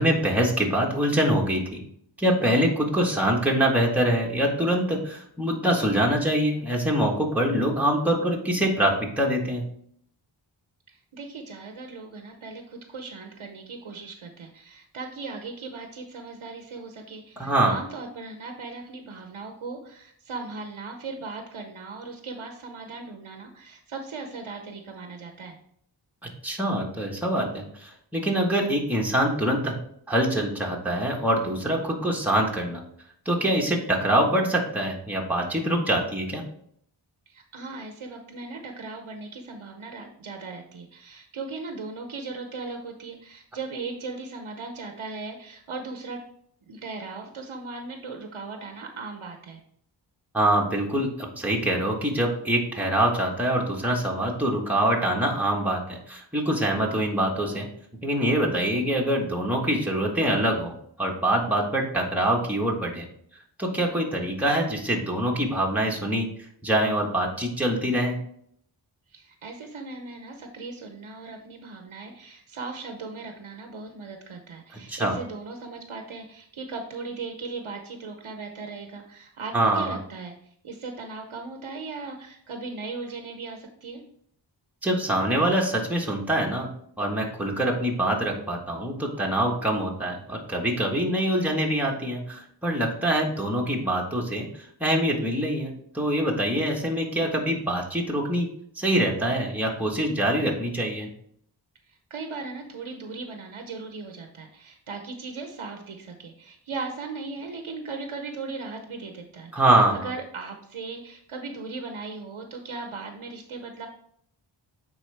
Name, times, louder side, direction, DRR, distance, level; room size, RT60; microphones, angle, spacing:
voice 1, 0.0-1.8 2.2-9.6 17.4-17.7 26.4-29.7 30.1-32.8 33.2-36.4 50.3-57.7 58.0-60.7 61.0-63.0 63.6-66.3 66.6-68.2 74.9-75.1 79.5-80.0 84.8-86.7 87.0-98.5 98.7-101.1 109.5-110.1, right 1 dB, 5° right, -1 dB, 1.4 m, -24 dB
voice 2, 10.9-25.6 37.3-46.2 46.7-49.6 69.1-84.0 101.9-113.9, right 4 dB, 85° right, 4 dB, 0.8 m, -38 dB
9.0 x 3.9 x 3.4 m, 0.67 s
wide cardioid pair, 60°, 47 cm